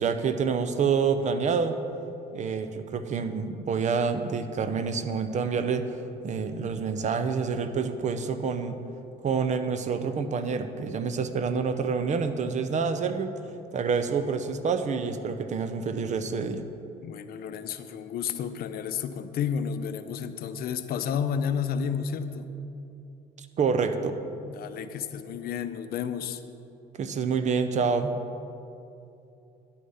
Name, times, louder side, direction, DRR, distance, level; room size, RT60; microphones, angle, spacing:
voice 1, 0.0-1.8 2.3-5.9 6.2-8.8 9.2-13.3 13.7-16.7 23.6-24.2 27.0-28.1, right 5 dB, 45° right, 9 dB, 0.7 m, -27 dB
voice 2, 17.0-22.5 24.4-26.4, left 7 dB, 65° left, 10 dB, 0.6 m, -31 dB
10.0 x 8.4 x 5.6 m, 2.8 s
cardioid pair, 110°, 17 cm